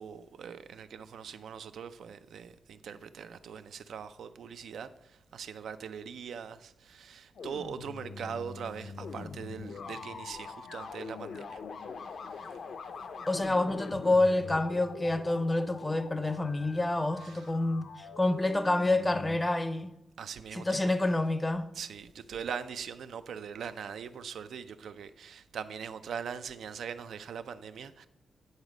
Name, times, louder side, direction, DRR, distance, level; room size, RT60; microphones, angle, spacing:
voice 1, 0.0-11.6 12.3-12.4 17.2-17.5 20.2-20.9 21.7-28.1, right 7 dB, 80° right, 0.4 m, -41 dB
sound 1, 7.3-19.4, left 5 dB, 65° left, 0.5 m, -43 dB
voice 2, 13.3-19.9 20.5-21.7, left 2 dB, 15° left, 0.5 m, -28 dB
9.6 x 4.1 x 4.9 m
wide cardioid pair, 135°, 0 cm